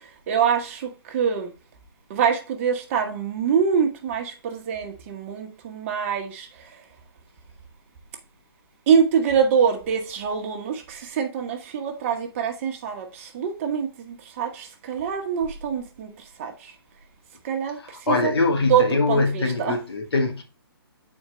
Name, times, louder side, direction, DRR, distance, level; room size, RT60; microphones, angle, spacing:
voice 1, 0.0-1.5 2.1-6.8 8.9-16.7 17.4-18.3 18.7-19.8, right 7 dB, 30° right, 1.1 m, -25 dB
voice 2, 17.8-20.4, left 3 dB, 80° left, 1.9 m, -23 dB
7.8 x 4.4 x 3.0 m
hypercardioid pair, 155°, 13 cm